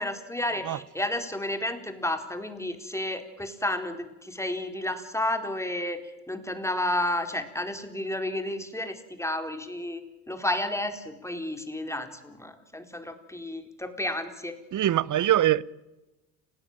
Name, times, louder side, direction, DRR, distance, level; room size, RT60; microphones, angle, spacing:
voice 1, 0.0-6.0 6.3-14.6, left 1 dB, 5° left, 4.3 m, -31 dB
voice 2, 14.7-15.6, right 13 dB, 40° right, 1.0 m, -22 dB
29.0 x 17.5 x 9.1 m
hypercardioid pair, 65°, 46 cm